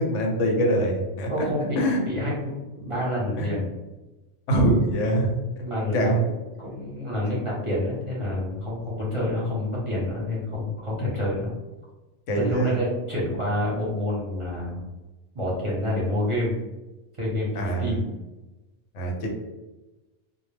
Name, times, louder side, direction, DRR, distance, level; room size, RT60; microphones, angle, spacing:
voice 1, 0.0-1.5 1.8-2.0 3.4-3.5 4.5-5.4 5.9-6.2 12.3-12.7 17.5-18.0 18.9-19.3, right 1 dB, 85° left, 1 dB, 1.0 m, -23 dB
voice 2, 1.3-3.7 5.6-6.3 6.6-11.5 12.4-14.8 15.3-16.6 17.2-18.1, left 1 dB, 35° right, -6 dB, 0.6 m, -28 dB
2.1 x 2.1 x 3.1 m, 1.1 s
omnidirectional pair, 1.2 m